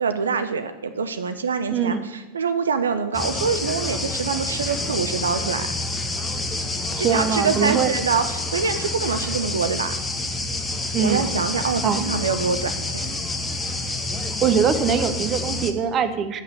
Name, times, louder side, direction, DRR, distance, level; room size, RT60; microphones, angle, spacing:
voice 1, 0.0-5.7 7.0-10.0 11.0-13.1, right 5 dB, 70° right, 10 dB, 0.5 m, -25 dB
voice 2, 1.7-2.1 7.0-7.9 10.9-11.4 11.8-12.0 14.4-16.4, right 7 dB, 30° right, 10 dB, 0.7 m, -22 dB
sound 1, 3.1-15.7, left 2 dB, 10° left, 0.8 m, -28 dB
8.2 x 5.7 x 7.0 m, 1.2 s
figure-of-eight pair, 90°, 0 cm